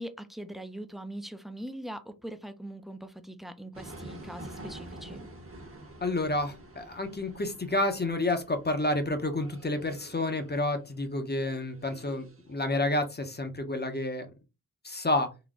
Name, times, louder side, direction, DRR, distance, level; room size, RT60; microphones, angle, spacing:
voice 1, 0.0-5.3, right 1 dB, ahead, 0.4 m, -41 dB
sound 1, 3.7-13.0, right 1 dB, 35° right, 0.9 m, -48 dB
voice 2, 6.0-14.3 14.8-15.3, left 2 dB, 25° left, 0.7 m, -29 dB
3.8 x 2.2 x 3.6 m
wide cardioid pair, 65°, 38 cm